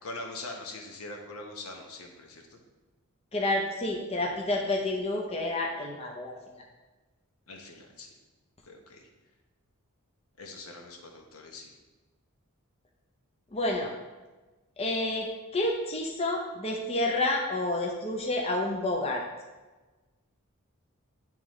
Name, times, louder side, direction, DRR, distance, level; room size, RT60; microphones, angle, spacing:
voice 1, 0.0-2.6 7.5-8.1 8.6-9.0 10.4-11.7, left 2 dB, 75° left, 2 dB, 0.9 m, -43 dB
voice 2, 3.3-6.4 13.5-13.9 14.8-19.3, left 2 dB, 25° left, 0 dB, 0.5 m, -29 dB
9.4 x 3.6 x 3.1 m, 1.2 s
head